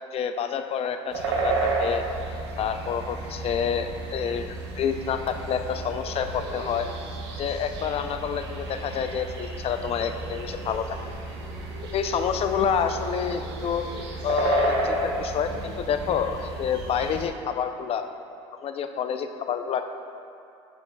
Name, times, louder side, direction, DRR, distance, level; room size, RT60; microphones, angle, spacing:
voice 1, 0.1-2.0 2.6-6.9 7.4-11.0 11.9-13.8 14.2-18.0 18.6-19.9, left 7 dB, 45° left, 8 dB, 0.5 m, -28 dB
sound 1, 1.1-17.3, right 3 dB, 90° right, 1.0 m, -32 dB
12.0 x 5.7 x 2.3 m, 2.5 s
supercardioid pair, 85°, 14 cm